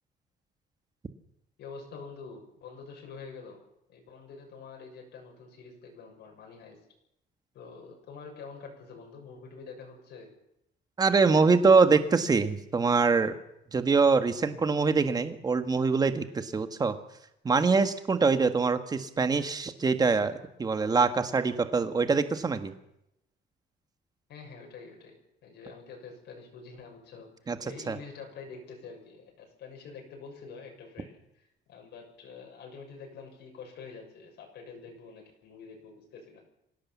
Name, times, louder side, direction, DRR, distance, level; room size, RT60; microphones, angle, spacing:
voice 1, 1.6-3.6 3.9-6.8 7.5-10.3 24.3-25.2 25.4-36.4, left 5 dB, 65° left, 1 dB, 6.8 m, -46 dB
voice 2, 11.0-13.4 13.7-16.9 17.4-22.7 27.5-27.6 27.9-28.0, right 4 dB, 20° right, 9 dB, 1.5 m, -24 dB
25.5 x 17.0 x 7.4 m, 0.81 s
cardioid pair, 170°, 19 cm